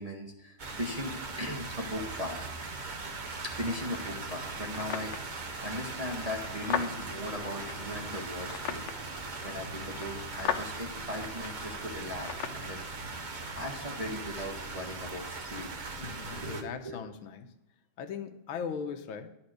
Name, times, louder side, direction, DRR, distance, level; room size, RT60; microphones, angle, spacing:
voice 1, 0.0-2.5 3.4-12.8 13.1-13.3 13.6-15.7 16.0-17.0, left 1 dB, 25° right, -1 dB, 1.1 m, -38 dB
sound 1, 0.6-16.6, right 3 dB, 50° right, 0.5 m, -40 dB
sound 2, 3.6-12.6, left 8 dB, 65° left, 1.4 m, -40 dB
voice 2, 16.0-17.5 18.0-19.3, left 6 dB, 90° left, 8 dB, 1.7 m, -39 dB
11.5 x 4.3 x 7.9 m, 0.93 s
omnidirectional pair, 2.2 m